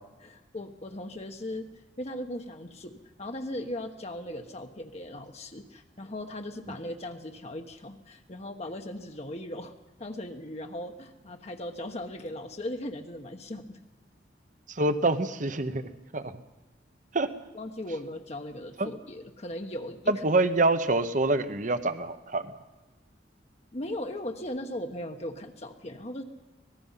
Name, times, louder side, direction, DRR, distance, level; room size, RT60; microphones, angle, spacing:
voice 1, 0.2-9.7 10.0-13.8 17.5-20.2 23.7-26.2, left 1 dB, 35° left, 4 dB, 1.2 m, -38 dB
voice 2, 14.7-16.3 17.1-17.3 18.8-18.9 20.1-22.4, right 2 dB, 45° right, 11 dB, 1.1 m, -26 dB
25.0 x 18.5 x 5.7 m, 1.1 s
head